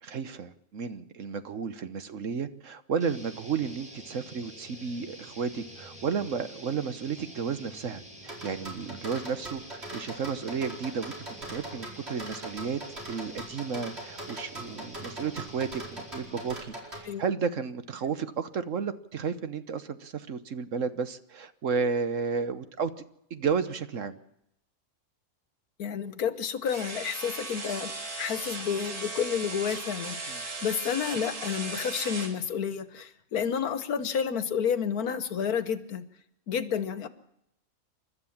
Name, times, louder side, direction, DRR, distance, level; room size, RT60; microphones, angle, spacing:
voice 1, 0.0-11.1 11.5-12.8 13.1-22.9 23.3-24.2 30.3-30.4, right 6 dB, 60° right, 11 dB, 1.4 m, -32 dB
sound 1, 3.0-16.7, right 1 dB, 5° right, 5.0 m, -47 dB
sound 2, 8.3-17.0, right 1 dB, 45° right, 5.1 m, -40 dB
voice 2, 25.8-27.9 28.2-36.0 36.5-37.1, left 7 dB, 80° left, 12 dB, 1.6 m, -30 dB
sound 3, 26.7-32.4, right 3 dB, 85° right, 2.9 m, -37 dB
28.5 x 13.0 x 7.3 m, 0.80 s
omnidirectional pair, 1.6 m